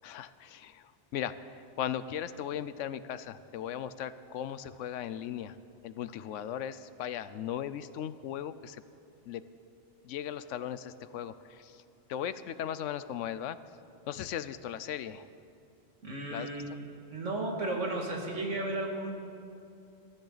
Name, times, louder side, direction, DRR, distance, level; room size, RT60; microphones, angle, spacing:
voice 1, 0.0-5.6 5.8-8.8 9.3-9.4 10.0-11.8 12.1-13.6 14.1-15.3 16.3-16.5, left 10 dB, 85° left, 14 dB, 1.0 m, -37 dB
voice 2, 16.0-16.6 17.1-19.1, right 2 dB, 85° right, 0 dB, 2.5 m, -34 dB
22.0 x 13.0 x 4.0 m, 2.6 s
omnidirectional pair, 1.2 m